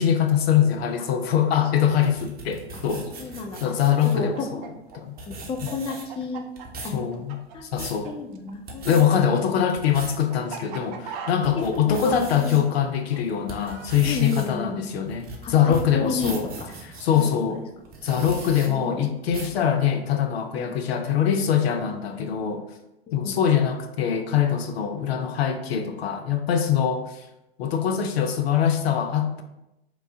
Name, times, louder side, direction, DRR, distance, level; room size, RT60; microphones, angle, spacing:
voice 1, 0.0-3.1 3.6-4.6 4.9-5.2 6.9-8.1 8.8-16.5 17.0-17.6 18.0-22.6 23.1-27.3 27.6-29.4, left 8 dB, 70° left, 7 dB, 0.6 m, -23 dB
sound 1, 1.8-4.2 4.9-5.0 5.2-6.2 6.6-7.0 7.5-8.0 8.5-9.0 9.6-10.2 10.7-10.8 11.3-12.6 13.1-17.3 17.9-18.7 19.3-19.6, right 3 dB, 30° right, 0.9 m, -39 dB
voice 2, 3.2-3.6 4.1-4.5 5.3-6.4 6.8-7.0 7.5-7.6 8.0-9.3 11.5-12.6 14.1-14.8 15.4-16.7 17.2-17.3 18.7-19.2 20.6-20.8 23.1-23.4, left 4 dB, 20° left, 4 dB, 0.4 m, -32 dB
Chicken rooster, 3.7-8.1 8.3-14.0, right 7 dB, 45° right, 0.6 m, -40 dB
4.4 x 2.9 x 2.6 m, 0.89 s
hypercardioid pair, 90°, 32 cm